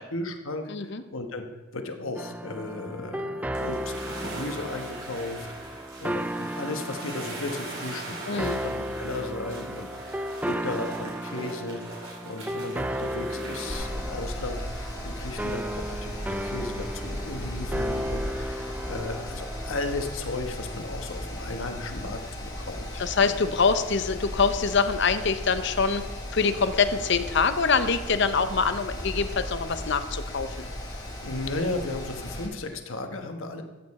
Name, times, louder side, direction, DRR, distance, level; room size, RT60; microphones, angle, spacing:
voice 1, 0.1-1.5 1.7-23.3 31.2-33.6, left 2 dB, 80° left, 6 dB, 1.2 m, -35 dB
voice 2, 0.7-1.0 8.3-8.6 23.0-26.1 26.3-30.7, left 5 dB, 60° left, 11 dB, 0.7 m, -24 dB
sound 1, 2.1-20.1, equal, 5° right, 0.3 m, -35 dB
sound 2, 3.5-13.9, right 2 dB, 65° right, 4.4 m, -41 dB
Mechanical fan, 13.7-32.5, left 1 dB, 20° left, 2.0 m, -36 dB
14.0 x 8.6 x 4.2 m, 1.2 s
head